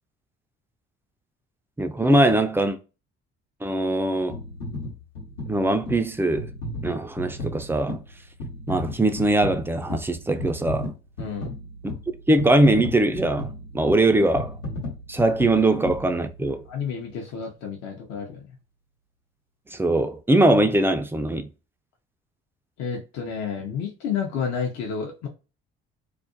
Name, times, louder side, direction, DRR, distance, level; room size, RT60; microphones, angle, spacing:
voice 1, 1.8-2.8 3.6-4.4 5.5-6.5 6.8-8.0 8.7-10.9 12.3-14.5 15.1-16.6 19.7-21.5, right 1 dB, 10° right, 0.3 m, -21 dB
sound 1, 4.3-16.7 17.3-17.4, left 1 dB, 80° left, 1.0 m, -35 dB
voice 2, 11.2-11.6 16.7-18.5 22.8-25.3, left 6 dB, 60° left, 0.7 m, -30 dB
2.4 x 2.0 x 2.5 m
hypercardioid pair, 55°, 30 cm